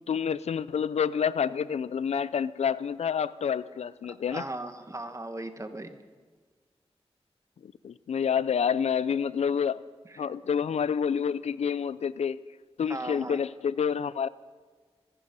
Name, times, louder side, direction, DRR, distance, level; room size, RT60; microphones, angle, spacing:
voice 1, 0.0-4.4 7.6-9.8 10.2-12.4 12.8-14.3, left 7 dB, 90° left, 0.4 m, -28 dB
voice 2, 4.3-6.0 10.0-10.3 12.9-13.4, right 2 dB, 30° right, 1.6 m, -38 dB
25.5 x 10.5 x 5.4 m
wide cardioid pair, 60°, 11 cm